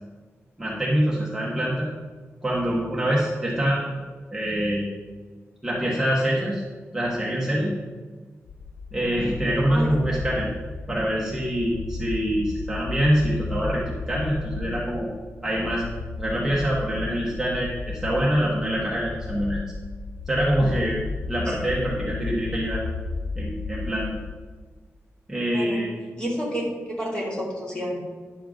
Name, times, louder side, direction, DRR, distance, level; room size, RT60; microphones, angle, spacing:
voice 1, 0.6-1.9 2.4-4.0 4.3-4.9 5.6-6.6 6.9-7.7 8.9-10.5 10.9-13.8 14.1-15.1 15.4-15.8 16.2-19.6 20.3-21.0 21.3-22.8 23.3-24.1 25.3-25.9, equal, 5° right, -7 dB, 1.4 m, -25 dB
sound 1, 8.5-24.4, left 4 dB, 80° left, 0.6 m, -34 dB
voice 2, 9.7-10.0 21.5-21.6 25.5-25.8 26.2-28.2, equal, 20° left, -5 dB, 2.6 m, -30 dB
10.5 x 6.8 x 3.8 m, 1.4 s
wide cardioid pair, 155°, 5 cm